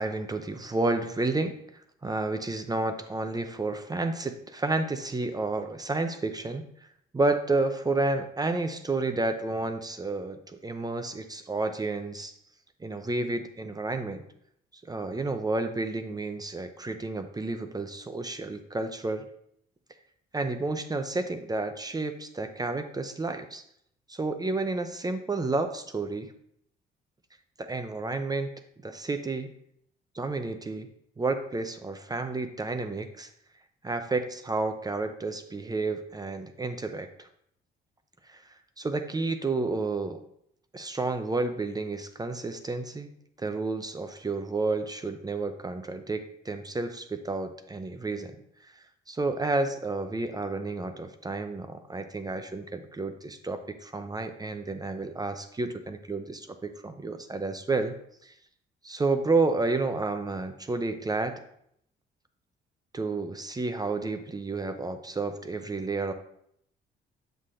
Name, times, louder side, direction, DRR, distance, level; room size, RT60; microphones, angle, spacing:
voice 1, 0.0-1.6 2.0-6.7 7.1-12.3 12.8-14.2 14.9-19.2 20.3-23.6 24.1-26.3 27.6-28.5 28.8-29.5 30.1-30.9 31.2-33.3 33.8-37.3 38.3-38.4 38.8-40.2 40.7-43.1 43.4-48.3 49.1-58.0 58.2-58.3 58.8-61.4 62.9-66.1, right 3 dB, 20° right, 7 dB, 0.5 m, -30 dB
8.0 x 5.6 x 2.5 m, 0.71 s
cardioid pair, 90°, 20 cm